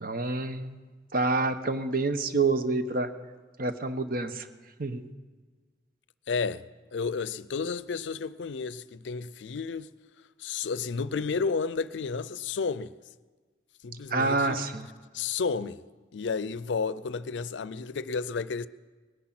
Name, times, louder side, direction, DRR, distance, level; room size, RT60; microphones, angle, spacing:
voice 1, 0.0-0.8 1.1-3.1 3.6-4.5 4.8-5.1 14.1-14.9, right 3 dB, 55° right, 0.9 m, -27 dB
voice 2, 6.3-6.6 6.9-9.9 10.4-12.9 13.8-14.6 15.1-15.8 16.1-18.7, left 5 dB, 85° left, 0.5 m, -31 dB
20.0 x 10.0 x 5.9 m
head